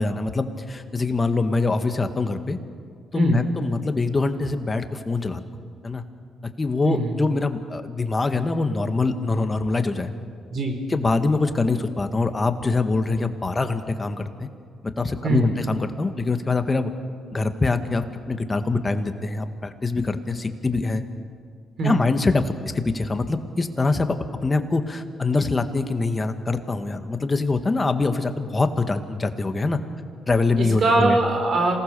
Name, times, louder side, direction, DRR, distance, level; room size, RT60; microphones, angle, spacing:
voice 1, 0.0-2.6 3.1-5.4 5.8-6.0 6.4-10.1 10.9-14.5 14.8-16.9 17.3-21.0 21.8-29.8 30.3-31.2, left 3 dB, 25° left, 8 dB, 1.7 m, -24 dB
voice 2, 3.1-3.5 6.8-7.2 10.5-10.8 15.2-15.5 21.8-22.1 30.6-31.7, right 2 dB, 55° right, 3 dB, 4.8 m, -22 dB
27.5 x 18.5 x 6.9 m, 2.1 s
cardioid pair, 90°, 0 cm